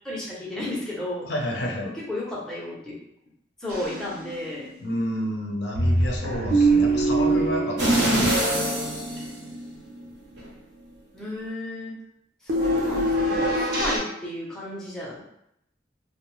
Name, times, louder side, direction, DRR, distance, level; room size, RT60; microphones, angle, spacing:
voice 1, 0.0-1.3 1.8-3.0 3.6-4.7 11.1-12.0 12.4-15.2, left 1 dB, 5° left, -6 dB, 0.6 m, -33 dB
voice 2, 1.2-1.9 4.8-8.5, equal, 65° left, 0 dB, 0.5 m, -30 dB
sound 1, 3.7-4.3 4.6-4.7 5.8-8.9 12.5-14.0, right 2 dB, 55° right, 0.6 m, -23 dB
sound 2, 7.8-9.9 10.4-10.5, right 1 dB, 85° right, 0.9 m, -24 dB
2.6 x 2.1 x 2.9 m, 0.77 s
head